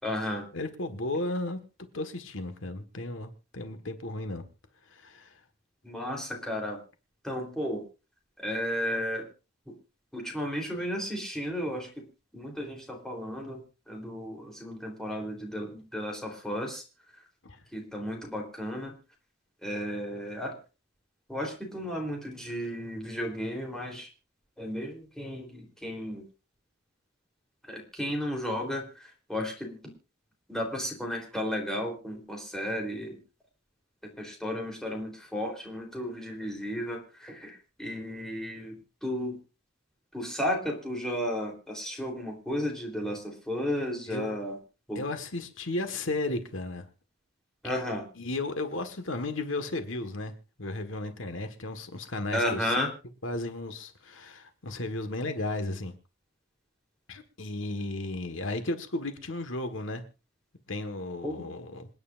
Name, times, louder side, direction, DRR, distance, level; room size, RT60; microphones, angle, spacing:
voice 1, 0.0-0.5 5.8-6.8 7.2-7.8 8.4-9.3 10.1-12.0 12.3-16.8 17.7-18.9 19.6-20.5 21.3-24.1 24.6-26.2 27.7-28.9 29.3-29.8 30.5-33.2 34.0-39.4 40.1-44.6 44.9-45.0 47.6-48.0 52.3-52.9 61.2-61.5, equal, 5° left, 3.6 m, -33 dB
voice 2, 0.5-1.6 1.9-4.4 4.9-5.3 17.4-17.6 44.1-44.3 44.9-46.8 48.1-50.3 50.6-52.7 53.2-55.9 57.1-60.0 60.7-61.9, left 2 dB, 85° left, 1.6 m, -34 dB
27.0 x 9.6 x 2.6 m
head